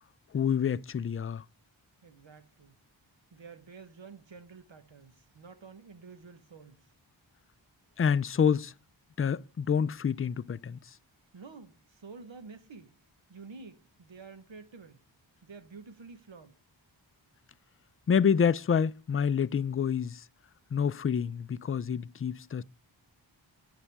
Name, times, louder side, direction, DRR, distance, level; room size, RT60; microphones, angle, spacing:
voice 1, 0.3-1.4 8.0-8.7 9.2-10.8 18.1-20.2 20.7-22.6, left 7 dB, 30° left, 0.3 m, -27 dB
voice 2, 2.0-2.8 3.3-6.9 11.3-13.0 13.3-15.0 15.4-16.6, right 4 dB, 70° right, 1.2 m, -50 dB
9.9 x 8.3 x 3.4 m
wide cardioid pair, 70°, 47 cm